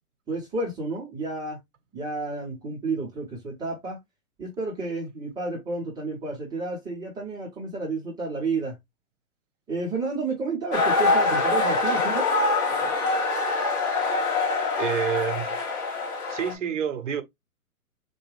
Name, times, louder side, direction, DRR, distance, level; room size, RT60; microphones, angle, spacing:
voice 1, 0.3-1.6 1.9-4.0 4.4-8.8 9.7-12.3, right 3 dB, 10° right, 0.7 m, -31 dB
sound 1, 10.7-16.5, left 3 dB, 30° left, 1.3 m, -24 dB
voice 2, 14.8-15.6 16.3-17.2, right 8 dB, 55° right, 0.8 m, -28 dB
4.4 x 2.3 x 3.2 m
figure-of-eight pair, 125°, 45 cm